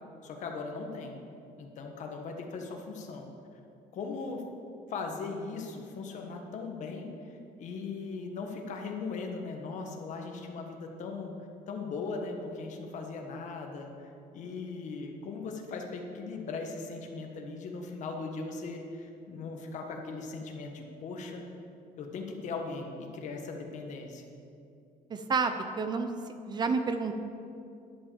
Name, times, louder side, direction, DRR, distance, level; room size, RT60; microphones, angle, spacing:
voice 1, 0.2-1.2 1.6-3.3 3.9-4.4 4.9-7.1 7.6-11.3 11.7-21.5 22.0-24.2, left 4 dB, 55° left, 2 dB, 1.4 m, -39 dB
voice 2, 25.1-26.1 26.4-27.1, right 4 dB, 30° right, 8 dB, 0.5 m, -29 dB
11.0 x 6.0 x 7.1 m, 2.6 s
cardioid pair, 160°, 15 cm